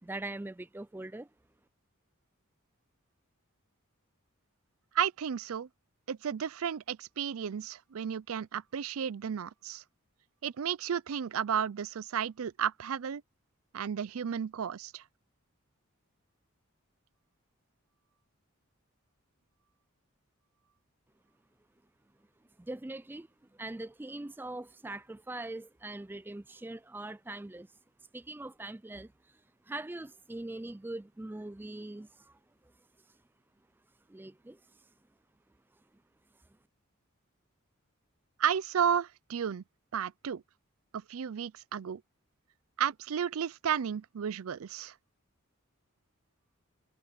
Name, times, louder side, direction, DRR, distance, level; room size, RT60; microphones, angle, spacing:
voice 1, 0.0-1.3 22.6-27.7 28.1-29.1 29.6-32.7 34.1-34.6, right 2 dB, 10° right, 0.3 m, -42 dB
voice 2, 4.9-5.7 6.1-9.8 10.4-13.2 13.7-15.0 38.4-39.6 39.9-40.4 41.1-42.0 42.8-44.9, right 8 dB, 80° right, 0.4 m, -33 dB
head